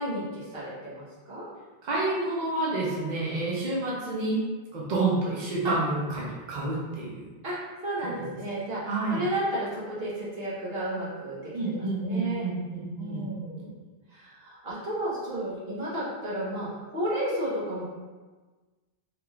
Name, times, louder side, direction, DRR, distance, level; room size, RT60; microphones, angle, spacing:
voice 1, 0.0-1.4 5.6-5.7 7.4-12.5 13.0-13.8 14.1-17.8, right 1 dB, 70° right, -8 dB, 1.3 m, -32 dB
voice 2, 1.8-4.4 4.7-7.2 8.0-8.2 8.9-9.2 11.5-13.3, right 2 dB, 55° right, -5 dB, 0.7 m, -29 dB
3.5 x 2.9 x 2.4 m, 1.3 s
omnidirectional pair, 1.0 m